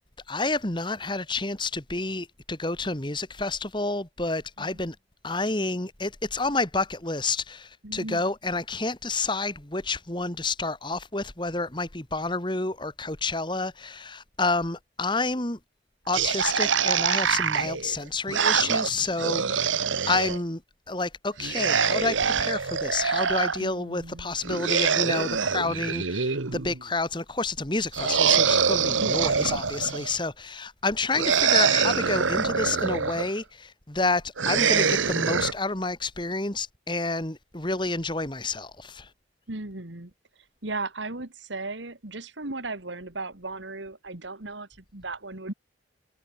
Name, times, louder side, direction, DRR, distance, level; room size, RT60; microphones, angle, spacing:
voice 1, 0.3-5.0 5.2-15.6 16.1-20.6 20.9-39.1, left 3 dB, 25° left, 1.9 m, -29 dB
voice 2, 7.8-8.2 19.3-19.6 23.6-24.3 28.9-29.4 39.5-40.1 40.6-45.5, right 2 dB, 75° right, 2.3 m, -36 dB
sound 1, 16.1-20.4 21.4-23.6 24.4-26.8 27.9-30.2 31.1-33.3 34.4-35.5, right 6 dB, 90° right, 1.4 m, -24 dB
head